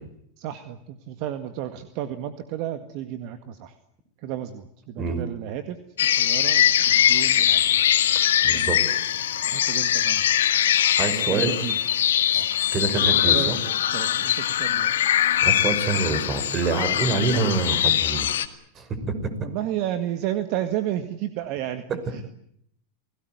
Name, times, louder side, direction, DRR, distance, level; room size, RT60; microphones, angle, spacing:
voice 1, 0.4-3.8 4.2-5.8 6.1-7.8 8.5-8.7 9.4-10.4 11.1-11.8 12.3-12.5 13.1-15.0 19.4-22.2, right 12 dB, 55° right, 9 dB, 1.9 m, -32 dB
sound 1, 6.0-18.4, left 10 dB, 85° left, 2.2 m, -22 dB
voice 2, 8.4-9.0 11.0-11.5 12.3-12.4 12.7-13.6 15.4-18.3 18.8-19.3, right 3 dB, 30° right, 10 dB, 5.9 m, -26 dB
29.0 x 18.5 x 9.5 m, 0.71 s
hypercardioid pair, 115°, 0 cm